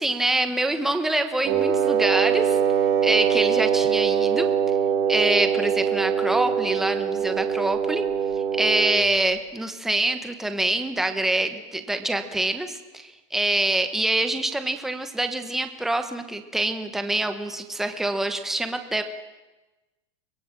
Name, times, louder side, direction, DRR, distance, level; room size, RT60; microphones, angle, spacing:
voice 1, 0.0-2.6 3.0-4.5 5.1-8.1 8.5-19.0, right 2 dB, ahead, 7 dB, 1.2 m, -25 dB
Wind instrument woodwind instrument, 1.4-9.1, right 7 dB, 40° right, 4.4 m, -23 dB
24.0 x 22.0 x 7.5 m, 1.1 s
supercardioid pair, 180°, 16 cm